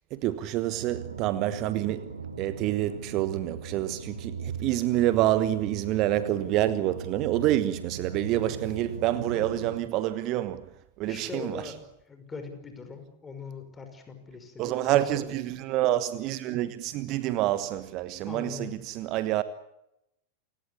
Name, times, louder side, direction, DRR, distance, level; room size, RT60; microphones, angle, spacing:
voice 1, 0.1-2.1 2.4-10.7 11.0-11.7 14.6-19.4, right 14 dB, 40° right, 1.2 m, -27 dB
sound 1, 0.6-9.8, right 5 dB, 75° right, 2.1 m, -39 dB
voice 2, 11.0-11.8 12.1-15.3 18.2-18.7, left 5 dB, 15° left, 5.7 m, -41 dB
29.0 x 18.0 x 8.6 m
figure-of-eight pair, 90°, 0 cm